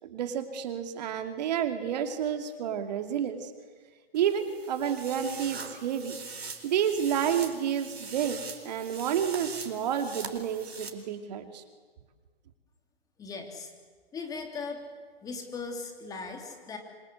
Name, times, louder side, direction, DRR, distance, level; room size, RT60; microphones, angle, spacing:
voice 1, 0.0-3.5 4.1-6.1 6.6-11.6, right 8 dB, 45° right, 6 dB, 2.8 m, -30 dB
sound 1, 4.1-10.9, right 4 dB, 80° right, 4.4 m, -42 dB
voice 2, 13.2-13.7 14.1-14.8 15.2-16.8, left 4 dB, 10° left, 3 dB, 3.0 m, -38 dB
27.5 x 25.5 x 8.1 m, 1.5 s
hypercardioid pair, 140°, 31 cm